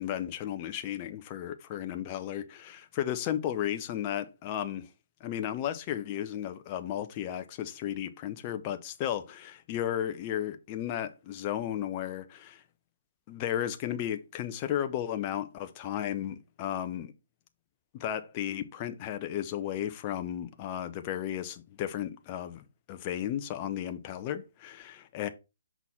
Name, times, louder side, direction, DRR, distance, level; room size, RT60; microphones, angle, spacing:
voice 1, 0.0-4.9 5.2-12.6 13.3-17.1 17.9-25.3, left 11 dB, 30° left, 0.6 m, -34 dB
5.7 x 4.0 x 4.1 m
figure-of-eight pair, 140°, 0 cm